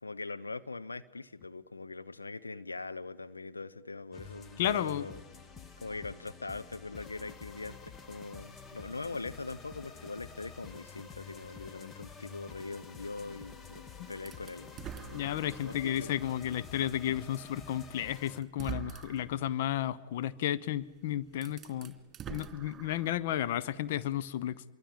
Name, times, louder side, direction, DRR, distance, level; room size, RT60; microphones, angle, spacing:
voice 1, 0.0-5.2 5.8-15.2 15.6-16.1, left 3 dB, 85° left, 12 dB, 0.8 m, -42 dB
sound 1, 4.1-18.4, left 5 dB, 20° left, 1.2 m, -49 dB
voice 2, 4.6-5.1 14.0-14.1 15.1-21.9 22.3-24.6, left 11 dB, 55° left, 16 dB, 0.8 m, -33 dB
sound 2, 14.3-15.9 16.4-16.5 17.7-17.8 18.4-19.4 20.8-20.9 21.3-23.3, right 9 dB, 20° right, 3.1 m, -44 dB
27.5 x 23.0 x 9.0 m, 1.2 s
figure-of-eight pair, 105°, 0 cm